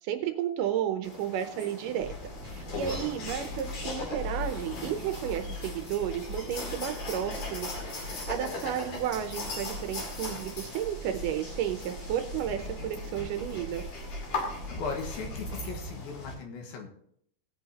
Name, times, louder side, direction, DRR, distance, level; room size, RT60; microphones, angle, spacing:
voice 1, 0.0-2.1 2.4-13.8, right 10 dB, 75° right, 7 dB, 2.1 m, -32 dB
sound 1, 1.0-16.3, left 3 dB, 55° left, 3.5 m, -39 dB
sound 2, 2.0-15.9, equal, 55° right, 3.1 m, -42 dB
voice 2, 14.7-16.9, left 5 dB, 80° left, 2 dB, 3.3 m, -37 dB
18.0 x 8.5 x 2.8 m, 0.69 s
omnidirectional pair, 4.2 m